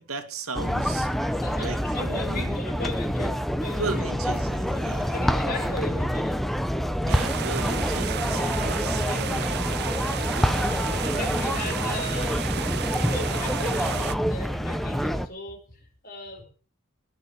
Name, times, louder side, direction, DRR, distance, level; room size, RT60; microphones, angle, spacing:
voice 1, 0.0-2.6 3.8-5.2 7.0-9.5, right 3 dB, 80° right, 7 dB, 2.4 m, -36 dB
sound 1, 0.5-15.3, equal, ahead, 0.7 m, -27 dB
voice 2, 1.0-4.1 4.7-4.8 5.1-6.4 9.8-16.4, left 2 dB, 45° left, 3 dB, 5.2 m, -38 dB
sound 2, 7.1-14.2, right 8 dB, 50° right, 0.6 m, -32 dB
20.5 x 7.1 x 7.5 m, 0.41 s
head